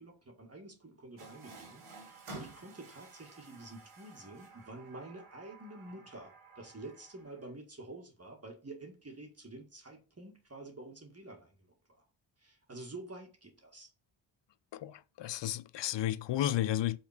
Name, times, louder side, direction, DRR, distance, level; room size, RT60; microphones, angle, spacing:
voice 1, 0.0-12.0 12.4-13.9, right 2 dB, 30° right, 1.9 m, -49 dB
Water tap faucet, 1.2-7.5, right 3 dB, 85° right, 2.5 m, -52 dB
voice 2, 14.7-17.0, left 12 dB, 60° left, 0.6 m, -33 dB
5.6 x 4.2 x 5.0 m
cardioid pair, 65°, 49 cm